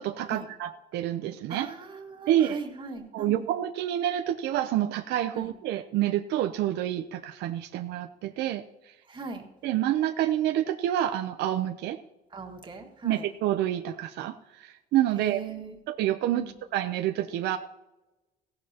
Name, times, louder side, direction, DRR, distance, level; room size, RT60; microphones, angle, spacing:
voice 1, 0.0-1.7 2.3-2.6 3.1-8.6 9.6-12.0 13.0-14.3 14.6-15.4 15.9-17.6, right 12 dB, 80° right, 7 dB, 0.7 m, -28 dB
voice 2, 1.5-3.4 5.3-5.5 9.1-9.4 12.3-13.2 15.1-15.8 16.3-16.5, right 4 dB, 30° right, 2 dB, 1.9 m, -39 dB
16.0 x 11.5 x 2.9 m, 1.0 s
cardioid pair, 110°, 17 cm